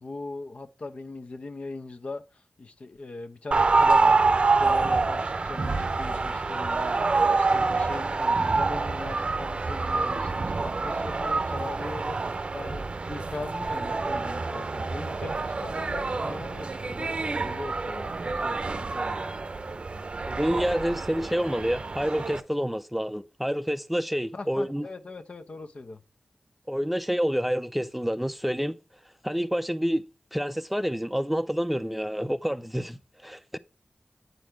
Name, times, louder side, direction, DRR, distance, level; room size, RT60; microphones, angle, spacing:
voice 1, 0.0-19.4 24.3-26.0, left 3 dB, 60° left, 0.9 m, -40 dB
sound 1, 3.5-22.4, right 3 dB, 55° right, 0.6 m, -27 dB
voice 2, 20.3-24.9 26.7-28.7 29.2-30.0 30.3-33.6, equal, 5° right, 0.5 m, -28 dB
9.2 x 4.2 x 4.6 m
wide cardioid pair, 65°, 2 cm